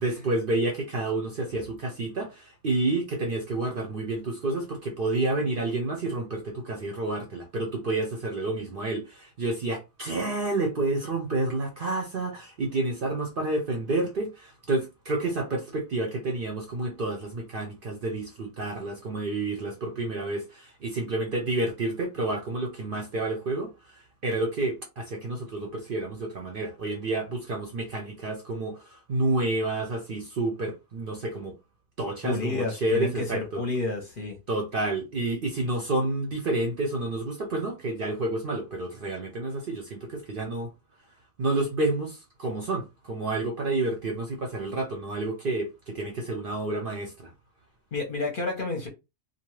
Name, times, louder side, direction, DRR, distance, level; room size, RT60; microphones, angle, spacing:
voice 1, 0.0-31.5 32.0-33.6 34.5-40.7 41.4-47.3, right 2 dB, 50° right, 0.7 m, -29 dB
voice 2, 32.2-34.4 47.9-48.9, left 3 dB, 45° left, 0.8 m, -30 dB
2.6 x 2.3 x 3.1 m
omnidirectional pair, 1.4 m